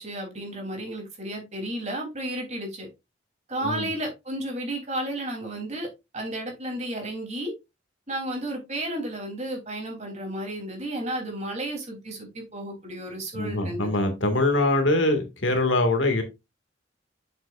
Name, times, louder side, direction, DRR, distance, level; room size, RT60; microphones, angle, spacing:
voice 1, 0.0-2.9 3.5-5.9 6.1-7.5 8.1-13.9, right 1 dB, 35° right, 3.3 m, -32 dB
voice 2, 13.3-16.2, left 2 dB, 85° left, 2.0 m, -23 dB
7.8 x 7.4 x 2.5 m
head